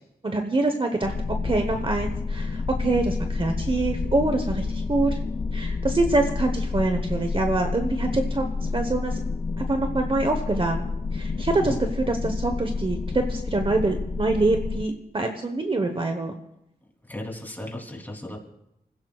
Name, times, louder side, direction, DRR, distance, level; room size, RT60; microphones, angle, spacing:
voice 1, 0.2-1.1 1.4-5.2 5.5-8.4 8.7-9.2 9.6-11.7 12.1-16.3, right 2 dB, 30° right, 5 dB, 1.1 m, -25 dB
sound 1, 1.0-14.9, left 4 dB, 40° left, 0.6 m, -29 dB
voice 2, 17.0-18.4, left 1 dB, 10° left, 0 dB, 3.2 m, -35 dB
29.0 x 15.5 x 2.4 m, 0.86 s
wide cardioid pair, 115°, 17 cm